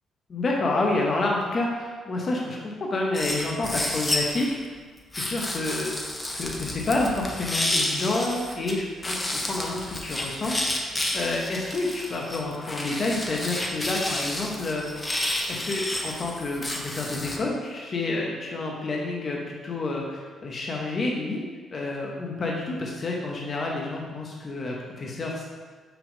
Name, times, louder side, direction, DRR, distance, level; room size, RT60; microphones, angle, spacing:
voice 1, 0.3-4.5 5.2-6.0 6.3-10.8 11.1-15.0 15.5-21.4 21.7-25.4, left 2 dB, 45° left, -1 dB, 0.9 m, -29 dB
sound 1, 3.1-4.5 5.1-8.7 9.0-17.4, left 1 dB, 20° left, 0.9 m, -30 dB
5.9 x 3.5 x 5.2 m, 1.5 s
cardioid pair, 90°, 0 cm